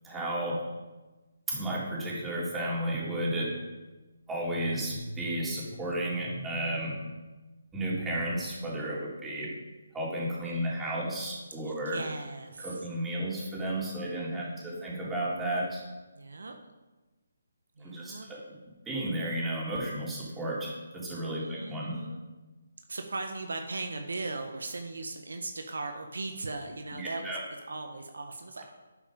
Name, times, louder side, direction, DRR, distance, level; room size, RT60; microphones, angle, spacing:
voice 1, 0.0-0.6 1.5-3.5 4.3-7.0 7.7-9.6 9.9-12.0 12.6-15.8 17.8-18.6 18.9-22.0 26.9-27.4, right 1 dB, 10° right, -6 dB, 3.8 m, -33 dB
voice 2, 10.4-11.1 11.6-12.8 13.9-14.8 16.2-16.5 17.8-18.3 21.4-22.2 22.9-27.4 27.7-28.6, right 3 dB, 70° right, 5 dB, 1.3 m, -39 dB
11.5 x 9.0 x 5.2 m, 1.2 s
figure-of-eight pair, 145°, 0 cm